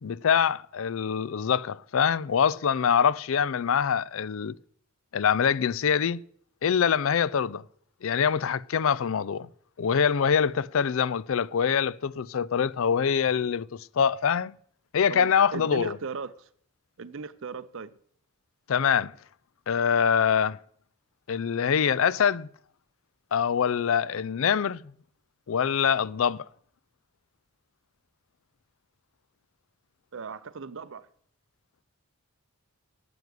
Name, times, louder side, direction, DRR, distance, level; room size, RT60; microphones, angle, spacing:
voice 1, 0.0-4.5 5.1-6.2 6.6-7.6 8.0-9.5 9.8-13.7 13.9-14.5 14.9-16.0 18.7-19.1 19.7-20.6 21.3-22.5 23.3-24.9 25.5-26.5, left 7 dB, 60° left, 0.4 m, -24 dB
voice 2, 15.1-16.3 17.0-17.9 30.1-31.1, right 5 dB, 60° right, 0.5 m, -37 dB
9.7 x 8.0 x 9.4 m
head